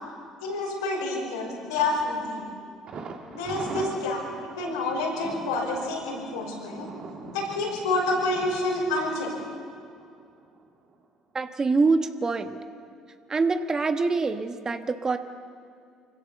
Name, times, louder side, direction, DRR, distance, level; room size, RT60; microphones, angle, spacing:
voice 1, 0.4-2.5 3.3-4.2 4.6-6.9 7.3-9.3, left 2 dB, 85° left, -2 dB, 5.5 m, -28 dB
Thunder, 2.9-10.6 10.9-11.0 11.4-11.5, right 4 dB, 50° right, 2.1 m, -42 dB
voice 2, 11.3-12.6 13.3-15.2, right 4 dB, 30° right, 8 dB, 1.4 m, -25 dB
25.0 x 16.0 x 7.0 m, 2.4 s
hypercardioid pair, 60°, 2 cm